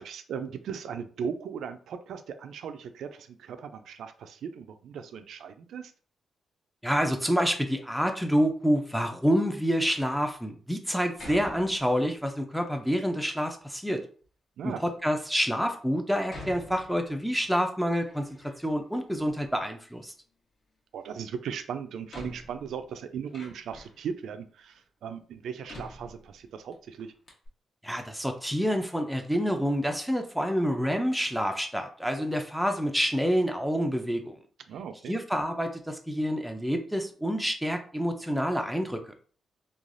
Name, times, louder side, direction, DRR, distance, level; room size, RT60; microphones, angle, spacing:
voice 1, 0.0-5.9 14.6-14.8 20.9-27.1 34.7-35.1, right 7 dB, 80° right, 9 dB, 0.3 m, -38 dB
voice 2, 6.8-14.0 14.6-18.3 18.6-20.1 27.8-34.4 35.1-39.1, equal, ahead, 4 dB, 0.4 m, -28 dB
Door, 9.8-10.3 11.2-12.2 12.8-13.5 14.2-14.3 15.0-15.1 16.3-17.4 17.8-18.8 19.1-20.0 21.3-21.4 22.1-24.1 24.7-24.8 25.7-26.7 27.0-27.1 27.3-27.5, left 1 dB, 50° left, 1.0 m, -47 dB
3.1 x 2.3 x 2.5 m, 0.43 s
cardioid pair, 110°, 0 cm